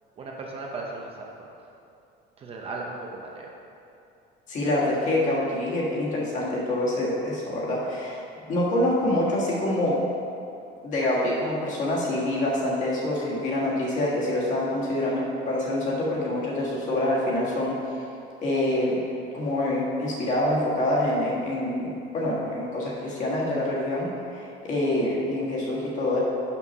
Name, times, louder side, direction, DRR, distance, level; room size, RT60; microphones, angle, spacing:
voice 1, 0.2-1.3 2.4-3.5, right 3 dB, 30° right, -1 dB, 0.6 m, -36 dB
voice 2, 4.5-8.2 8.5-10.0 10.8-17.7 18.4-19.0 19.3-26.2, left 1 dB, 40° left, -5 dB, 1.7 m, -26 dB
6.0 x 5.7 x 5.5 m, 2.6 s
cardioid pair, 165°, 21 cm